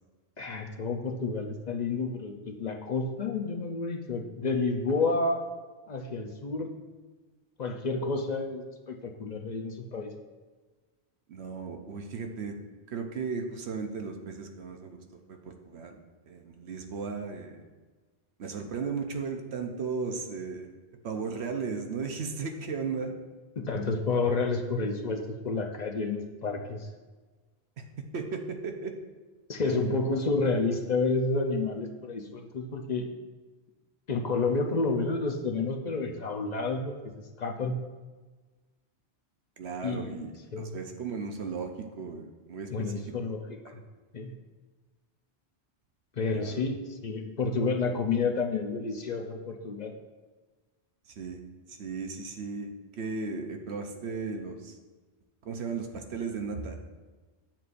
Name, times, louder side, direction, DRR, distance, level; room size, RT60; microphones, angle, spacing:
voice 1, 0.4-5.5 5.9-6.7 7.6-10.1 23.6-26.9 29.5-33.1 34.1-37.8 39.8-40.2 40.5-40.8 42.7-43.8 44.1-44.3 46.2-50.0, left 3 dB, 45° left, 3 dB, 0.7 m, -30 dB
voice 2, 11.3-12.6 12.9-15.0 15.3-17.7 18.4-20.7 21.0-23.1 28.1-28.9 39.6-40.3 40.6-43.0 43.6-43.8 46.3-46.6 51.1-51.4 51.7-52.7 53.0-54.8 55.4-56.8, right 5 dB, 75° right, 4 dB, 1.0 m, -36 dB
9.6 x 7.3 x 2.5 m, 1.3 s
omnidirectional pair, 1.1 m